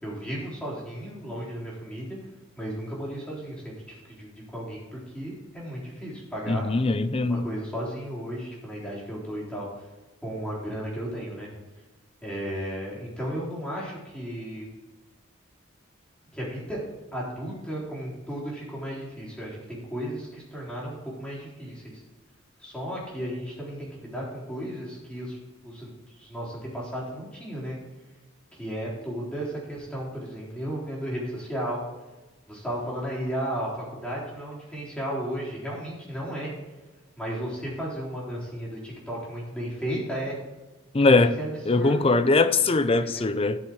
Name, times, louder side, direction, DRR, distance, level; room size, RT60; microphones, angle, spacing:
voice 1, 0.0-2.2 2.6-6.6 7.3-9.7 10.2-11.5 12.2-14.7 16.3-16.8 17.1-22.0 22.6-25.4 25.6-27.8 28.5-31.8 32.5-36.5 37.2-40.4 41.1-41.9 43.0-43.3, equal, 5° left, -6 dB, 3.8 m, -34 dB
voice 2, 6.5-7.5 40.9-41.3 41.7-43.6, left 3 dB, 30° left, 12 dB, 0.5 m, -21 dB
12.5 x 7.1 x 4.7 m, 1.1 s
head